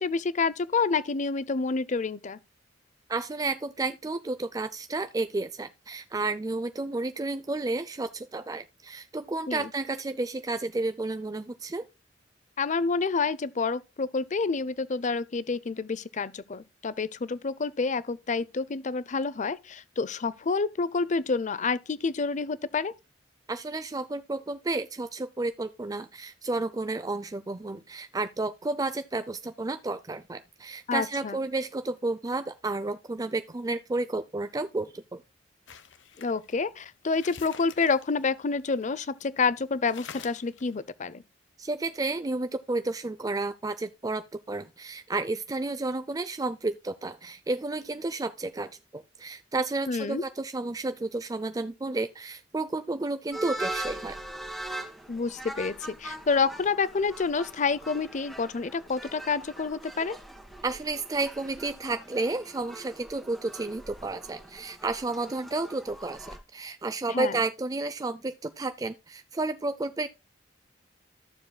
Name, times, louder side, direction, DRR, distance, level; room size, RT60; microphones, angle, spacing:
voice 1, 0.0-2.4 9.5-9.7 12.6-22.9 30.9-31.4 36.2-41.2 49.9-50.2 55.1-60.2 67.1-67.4, left 4 dB, 40° left, 0.5 m, -28 dB
voice 2, 3.1-11.8 23.5-35.2 41.6-44.2 44.5-54.2 60.6-70.1, right 2 dB, 20° right, 0.4 m, -31 dB
sound 1, 35.7-39.2 39.5-39.6 39.9-40.8, left 7 dB, 70° left, 0.9 m, -48 dB
sound 2, 53.3-66.4, right 1 dB, ahead, 1.7 m, -41 dB
13.5 x 7.1 x 2.2 m
head